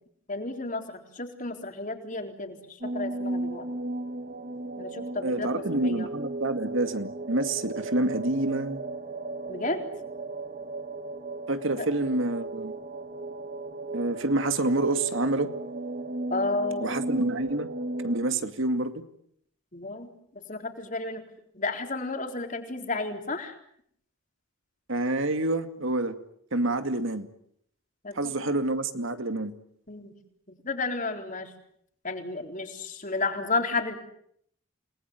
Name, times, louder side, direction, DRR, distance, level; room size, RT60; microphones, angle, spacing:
voice 1, 0.3-3.6 4.8-6.1 9.5-9.8 11.8-11.9 16.3-17.0 19.7-21.2 21.5-23.5 28.0-28.3 29.9-30.1 30.5-31.5 32.0-33.9, left 3 dB, 40° left, 5 dB, 4.0 m, -32 dB
sound 1, 2.8-18.2, right 2 dB, 40° right, 1.8 m, -35 dB
voice 2, 5.2-8.8 11.5-12.7 13.9-15.5 16.8-17.7 18.0-19.0 24.9-26.2 26.5-27.3 28.1-29.5, right 2 dB, 65° right, 9 dB, 2.3 m, -27 dB
29.5 x 20.5 x 9.8 m, 0.70 s
head